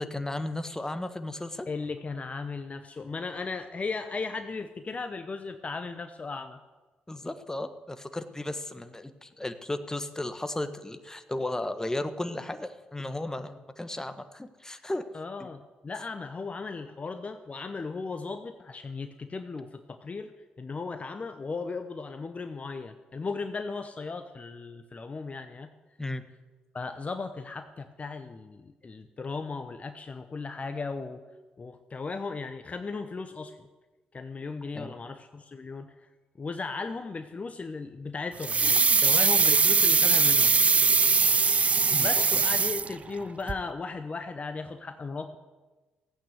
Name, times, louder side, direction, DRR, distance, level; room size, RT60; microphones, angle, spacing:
voice 1, 0.0-1.7 7.1-15.1 15.4-15.5 26.0-26.2 34.7-35.0 41.8-42.4, left 1 dB, 15° left, 10 dB, 1.5 m, -35 dB
voice 2, 1.7-6.6 15.1-20.3 20.6-25.7 26.7-31.2 31.6-33.7 34.1-35.9 36.4-40.5 41.9-45.4, left 4 dB, 40° left, 8 dB, 1.0 m, -36 dB
sound 1, 38.4-43.2 43.5-43.6, right 5 dB, 35° right, 0.4 m, -22 dB
15.5 x 8.8 x 8.1 m, 1.2 s
hypercardioid pair, 50°, 4 cm